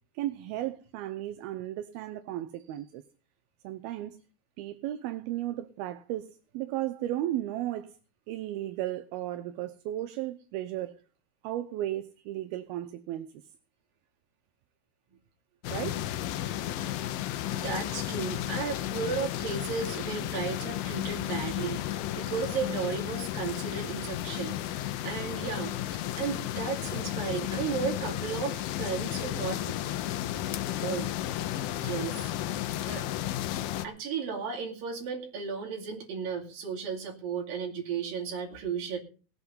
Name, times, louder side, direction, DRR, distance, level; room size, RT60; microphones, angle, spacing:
voice 1, 0.1-3.0 3.6-4.2 4.6-8.0 8.3-11.0 11.4-13.4 15.7-16.0, right 13 dB, 80° right, 2.6 m, -35 dB
sound 1, 15.6-33.9, left 13 dB, 75° left, 2.3 m, -33 dB
voice 2, 17.5-25.8 26.2-29.7 30.8-31.1 31.8-32.3 32.9-33.1 33.8-39.0, right 6 dB, 65° right, 4.3 m, -34 dB
18.5 x 8.2 x 5.4 m
omnidirectional pair, 4.5 m